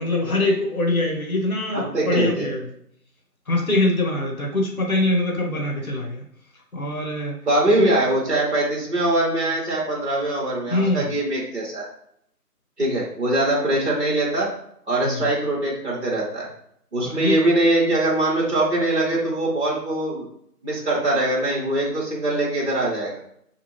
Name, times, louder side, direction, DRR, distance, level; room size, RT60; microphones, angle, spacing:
voice 1, 0.0-2.7 3.5-6.2 6.7-7.3 7.8-7.9 10.7-11.1 15.0-15.2 17.0-17.4, left 2 dB, 60° left, 1 dB, 1.0 m, -23 dB
voice 2, 1.7-2.5 7.5-11.9 12.8-14.5 14.9-16.5 16.9-20.3 20.6-23.2, right 1 dB, 45° right, -3 dB, 0.9 m, -22 dB
2.7 x 2.4 x 3.1 m, 0.70 s
figure-of-eight pair, 180°, 48 cm